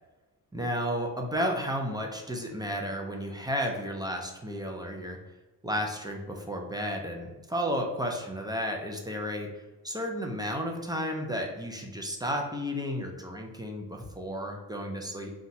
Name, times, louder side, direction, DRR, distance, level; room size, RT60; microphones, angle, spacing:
voice 1, 0.5-5.2 5.6-9.5 9.8-15.3, equal, 10° right, 1 dB, 0.5 m, -32 dB
4.1 x 2.4 x 4.0 m, 1.1 s
cardioid pair, 120°, 40 cm